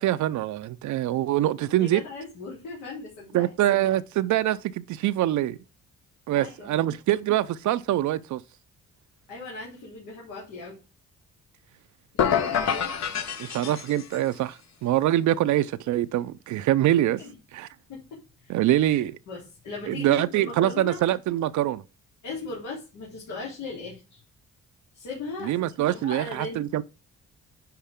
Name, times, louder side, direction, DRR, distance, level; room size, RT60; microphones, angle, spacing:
voice 1, 0.0-2.0 3.3-5.6 6.3-8.4 13.4-17.2 17.5-17.7 18.5-19.2 19.9-21.8 25.4-26.8, right 13 dB, 75° right, 0.5 m, -24 dB
voice 2, 1.8-3.7 6.3-6.8 9.3-10.8 12.1-12.9 13.6-13.7 17.2-17.4 17.9-18.6 19.3-21.0 22.2-24.2 24.9-25.6 25.9-26.6, left 3 dB, 90° left, 3.4 m, -38 dB
sound 1, 12.2-14.3, left 8 dB, 60° left, 1.1 m, -27 dB
10.5 x 4.7 x 3.6 m
cardioid pair, 90°, 30 cm